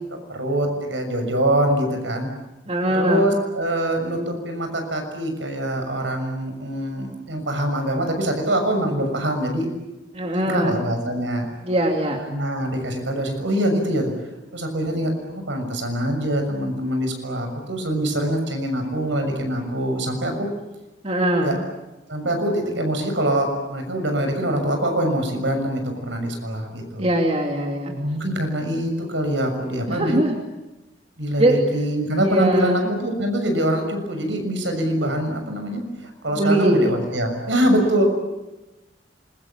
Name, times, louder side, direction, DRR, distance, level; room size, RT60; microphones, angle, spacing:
voice 1, 0.1-2.3 2.9-9.7 10.3-11.5 12.3-14.1 14.5-20.5 21.4-21.5 22.1-27.1 27.9-30.2 31.2-38.1, right 1 dB, 80° right, 5 dB, 6.6 m, -24 dB
voice 2, 2.7-3.2 10.1-10.8 11.6-12.2 21.0-21.6 27.0-27.9 29.9-30.4 31.4-31.6 32.2-32.9 36.4-36.9, right 1 dB, 30° right, 2 dB, 2.8 m, -21 dB
27.0 x 22.0 x 8.7 m, 1.0 s
head